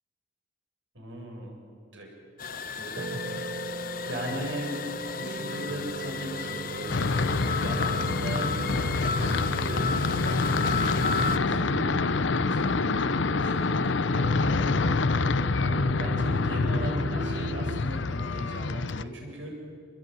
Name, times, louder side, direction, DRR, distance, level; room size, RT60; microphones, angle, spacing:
voice 1, 0.9-1.5 1.9-2.1 2.8-3.2 4.1-4.8 5.2-15.0 15.6-19.5, right 1 dB, 70° right, 0 dB, 7.8 m, -39 dB
sound 1, 2.4-11.4, left 5 dB, 45° left, 1.0 m, -34 dB
sound 2, 3.0-17.8, right 2 dB, 45° right, 0.8 m, -37 dB
sound 3, 6.9-19.0, left 3 dB, 70° left, 0.7 m, -27 dB
27.0 x 21.5 x 9.4 m, 2.1 s
head